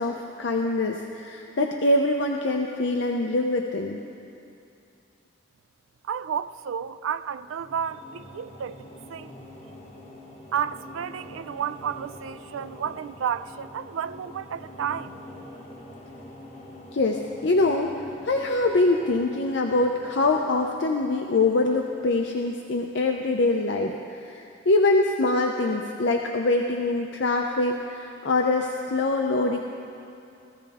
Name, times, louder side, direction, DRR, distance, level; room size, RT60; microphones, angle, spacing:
voice 1, 0.0-4.0 16.9-17.9 18.2-29.6, left 2 dB, 65° left, 2 dB, 0.6 m, -24 dB
voice 2, 6.0-9.3 10.5-15.2, right 8 dB, 90° right, 14 dB, 0.3 m, -32 dB
sound 1, 7.2-22.6, left 1 dB, 35° left, 1.3 m, -46 dB
16.5 x 14.5 x 3.5 m, 2.6 s
head